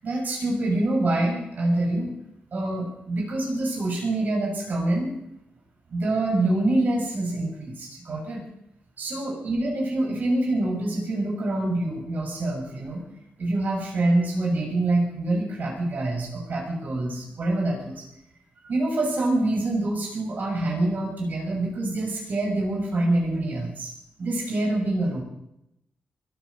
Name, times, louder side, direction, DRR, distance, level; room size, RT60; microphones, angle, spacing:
voice 1, 0.0-2.1 2.5-5.1 5.9-8.4 9.0-13.0 13.4-18.0 18.6-23.9 24.2-25.2, right 2 dB, 50° right, -1 dB, 6.8 m, -26 dB
22.5 x 9.7 x 6.5 m, 0.79 s
wide cardioid pair, 155°, 4 cm